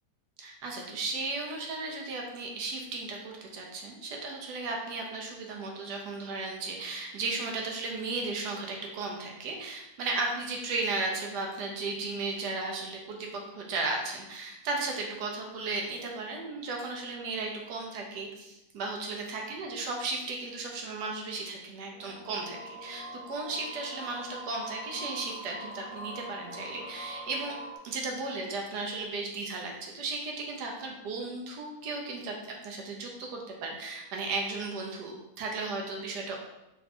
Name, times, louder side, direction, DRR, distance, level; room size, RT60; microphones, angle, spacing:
voice 1, 0.4-27.5 27.8-32.3 32.6-36.4, right 3 dB, 80° right, 1 dB, 1.2 m, -35 dB
sound 1, 21.9-27.8, right 1 dB, 60° left, 1.1 m, -43 dB
3.4 x 2.6 x 4.1 m, 0.93 s
omnidirectional pair, 1.8 m